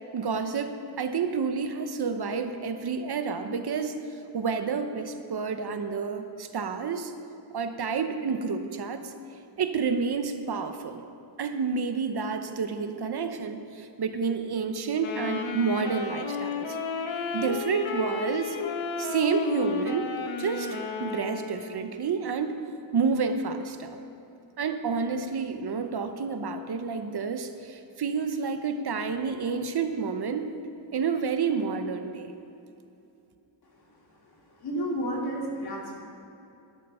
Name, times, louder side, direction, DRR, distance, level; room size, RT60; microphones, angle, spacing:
voice 1, 0.1-3.9 4.3-7.1 7.5-9.1 9.6-11.0 11.4-16.8 17.3-18.6 19.0-20.1 20.4-22.6 22.9-24.0 24.6-30.5 30.9-32.3, right 5 dB, 55° right, 8 dB, 0.9 m, -29 dB
Wind instrument woodwind instrument, 15.0-21.9, left 5 dB, 85° left, 1.2 m, -33 dB
voice 2, 34.6-36.0, right 1 dB, 55° left, -1 dB, 2.5 m, -31 dB
11.5 x 11.5 x 5.5 m, 2.8 s
wide cardioid pair, 130°, 46 cm